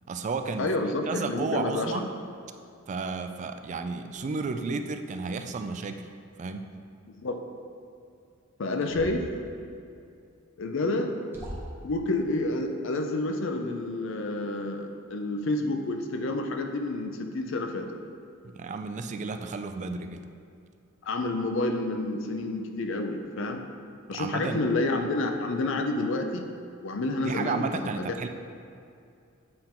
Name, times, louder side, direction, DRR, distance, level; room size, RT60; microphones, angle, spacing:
voice 1, 0.1-0.7 1.1-2.1 2.9-6.1 6.4-6.7 18.4-20.2 24.1-24.7 27.2-28.3, right 4 dB, 35° right, 7 dB, 0.3 m, -32 dB
voice 2, 0.6-2.0 7.1-7.4 8.6-9.3 10.6-11.1 11.8-17.9 21.0-23.6 24.1-26.5 26.8-28.1, left 2 dB, 65° left, 5 dB, 0.6 m, -29 dB
sound 1, 8.8-9.3 10.6-10.7 11.3-11.9, equal, 10° right, 1.2 m, -39 dB
7.8 x 3.8 x 4.3 m, 2.4 s
head